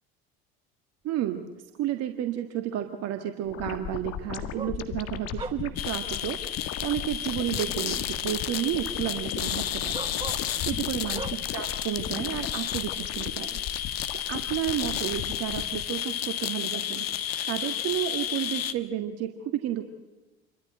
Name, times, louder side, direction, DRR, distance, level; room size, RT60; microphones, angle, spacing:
voice 1, 1.0-1.4 1.8-13.6 14.1-19.8, right 12 dB, 55° right, 7 dB, 1.8 m, -32 dB
sound 1, 1.8-1.9 4.5-4.8 5.4-5.6 6.8-6.9 8.7-8.8 9.9-10.5 11.1-11.4 13.5-13.6, right 4 dB, 15° right, 1.1 m, -38 dB
sound 2, 3.5-15.9, left 9 dB, 55° left, 1.7 m, -37 dB
sound 3, 5.8-18.7, left 11 dB, 90° left, 1.2 m, -32 dB
28.5 x 13.0 x 7.9 m, 1.1 s
hypercardioid pair, 75°, 30 cm